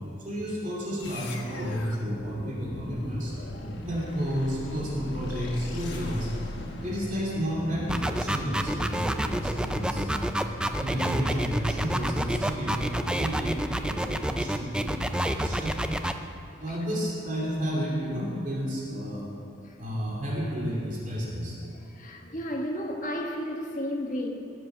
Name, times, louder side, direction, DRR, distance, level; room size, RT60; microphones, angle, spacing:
voice 1, 0.0-3.3 3.8-6.5 6.8-10.2 10.8-15.9 16.6-19.3 19.8-21.6, equal, 40° right, -5 dB, 2.5 m, -31 dB
sound 1, 1.0-13.6, left 1 dB, 55° left, 1.3 m, -39 dB
sound 2, 7.9-16.1, right 1 dB, 5° right, 0.4 m, -28 dB
voice 2, 21.8-24.3, equal, 40° left, 1 dB, 1.4 m, -33 dB
17.0 x 7.6 x 7.1 m, 2.6 s
head